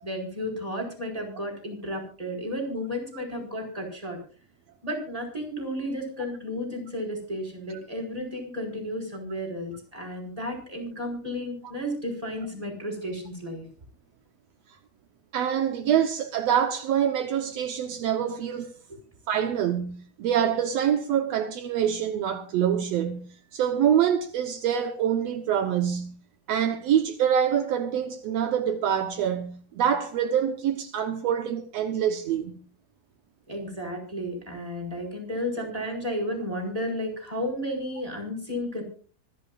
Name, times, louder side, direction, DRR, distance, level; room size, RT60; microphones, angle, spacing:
voice 1, 0.0-4.2 4.8-13.6 33.5-38.8, equal, 10° right, 4.5 m, -33 dB
voice 2, 15.3-18.7 19.3-26.1 26.5-32.6, right 9 dB, 75° right, 1.5 m, -25 dB
25.5 x 11.5 x 2.4 m
omnidirectional pair, 4.3 m